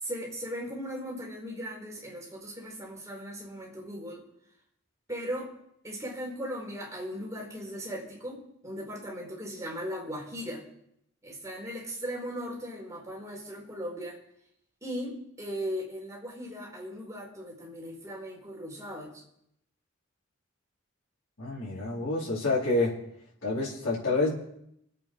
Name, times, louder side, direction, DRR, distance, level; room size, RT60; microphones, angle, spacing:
voice 1, 0.0-4.2 5.1-5.5 5.8-10.6 11.2-14.2 14.8-19.2, equal, 15° right, -2 dB, 4.5 m, -38 dB
voice 2, 21.4-23.0 23.4-24.3, left 2 dB, 90° left, -7 dB, 4.3 m, -28 dB
25.5 x 8.8 x 4.6 m, 0.75 s
head